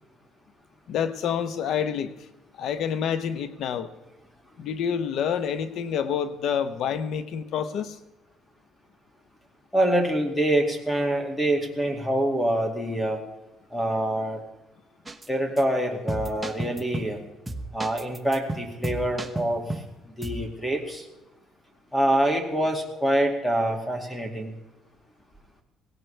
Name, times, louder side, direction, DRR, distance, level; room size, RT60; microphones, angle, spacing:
voice 1, 0.9-2.3 2.6-3.9 4.6-8.0, left 8 dB, 65° left, 12 dB, 1.0 m, -28 dB
voice 2, 9.7-13.2 13.7-14.4 15.3-17.2 17.7-19.8 20.2-21.0 21.9-24.6, right 1 dB, 10° left, 3 dB, 2.3 m, -25 dB
sound 1, 15.1-15.3 15.6-15.7 16.1-17.2 17.5-19.9 20.2-20.5, right 2 dB, 15° right, 1.0 m, -33 dB
17.5 x 17.0 x 3.4 m, 0.99 s
cardioid pair, 115°, 0 cm